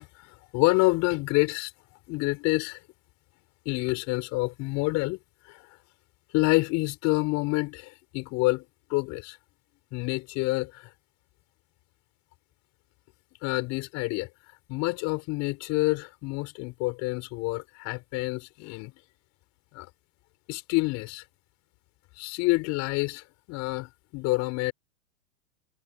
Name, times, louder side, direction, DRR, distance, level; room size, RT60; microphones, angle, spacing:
voice 1, 0.0-1.7 2.1-2.8 3.7-5.2 5.4-5.6 6.3-8.7 8.9-9.4 9.9-10.9 13.4-14.3 14.7-18.9 19.7-19.9 20.5-21.2 22.2-24.7, left 24 dB, 40° left, 5.0 m, -28 dB
hypercardioid pair, 125°, 42 cm